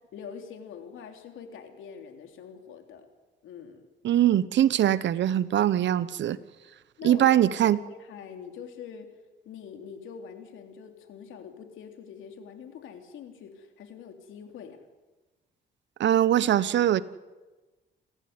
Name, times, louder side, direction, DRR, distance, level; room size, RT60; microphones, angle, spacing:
voice 1, 0.1-3.1 3.4-3.9 7.0-9.1 9.4-14.8, left 7 dB, 80° left, 5 dB, 3.4 m, -44 dB
voice 2, 4.0-6.4 7.0-7.8 16.0-17.0, right 11 dB, 65° right, 16 dB, 1.1 m, -22 dB
28.0 x 14.5 x 9.7 m, 1.2 s
cardioid pair, 90°, 20 cm